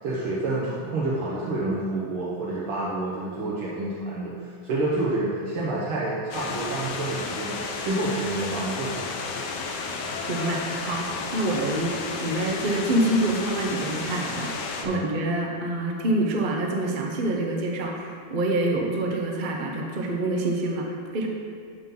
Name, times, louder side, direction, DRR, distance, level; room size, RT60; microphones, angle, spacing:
voice 1, 0.0-9.1 14.8-15.1, right 2 dB, 90° right, -7 dB, 2.0 m, -28 dB
sound 1, 6.3-14.9, left 4 dB, 65° left, 1.2 m, -32 dB
voice 2, 10.3-20.9 21.1-21.3, right 1 dB, 60° right, 0 dB, 0.5 m, -26 dB
12.5 x 5.7 x 3.7 m, 2.1 s
omnidirectional pair, 2.3 m